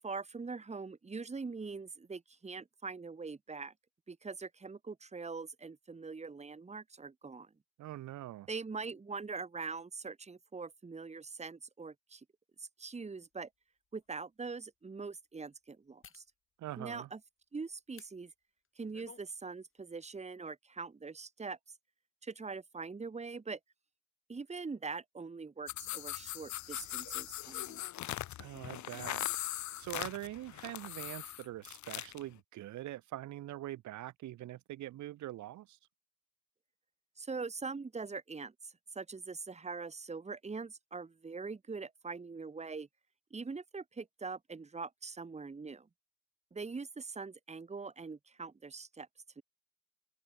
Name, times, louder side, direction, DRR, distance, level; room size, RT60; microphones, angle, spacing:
voice 1, 0.0-3.7 4.1-7.5 8.5-12.2 12.6-13.5 13.9-16.2 16.8-17.2 17.5-18.3 18.8-21.6 22.2-23.6 24.3-27.8 37.2-42.9 43.3-45.9 46.5-49.1 49.4-49.5, right 4 dB, 20° right, 1.6 m, -43 dB
voice 2, 7.8-8.5 16.6-17.1 28.4-29.4 29.8-35.8, right 14 dB, 70° right, 0.9 m, -43 dB
sound 1, 13.2-13.3 13.9-14.1 16.0-16.3 17.9-18.1 18.6-19.3 19.6-19.8, left 7 dB, 45° left, 3.2 m, -56 dB
sound 2, 25.7-32.2, left 13 dB, 70° left, 1.0 m, -40 dB
cardioid pair, 90°, 30 cm